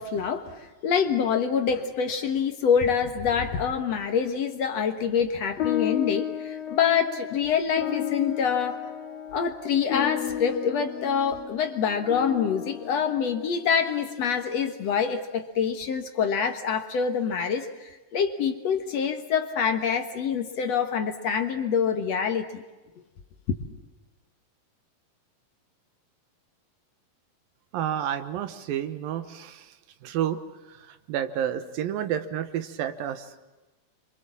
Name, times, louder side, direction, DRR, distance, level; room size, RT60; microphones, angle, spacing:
voice 1, 0.0-8.8 9.3-22.6 23.5-23.6, left 7 dB, 60° left, 7 dB, 2.2 m, -26 dB
sound 1, 5.6-14.3, left 11 dB, 85° left, 3.8 m, -33 dB
voice 2, 27.7-29.8 30.0-30.4 30.7-33.4, right 10 dB, 85° right, 11 dB, 3.1 m, -30 dB
27.5 x 25.5 x 7.4 m, 1.2 s
omnidirectional pair, 4.0 m